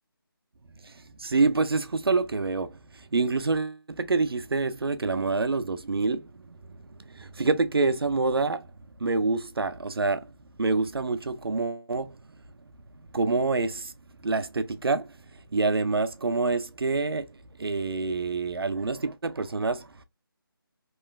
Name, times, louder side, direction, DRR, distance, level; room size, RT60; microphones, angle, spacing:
voice 1, 1.2-8.7 9.0-10.3 10.6-12.2 13.1-13.9 14.2-15.2 15.5-17.3 17.6-20.0, right 3 dB, 80° right, 0.5 m, -27 dB
3.2 x 3.0 x 2.2 m
figure-of-eight pair, 160°, 12 cm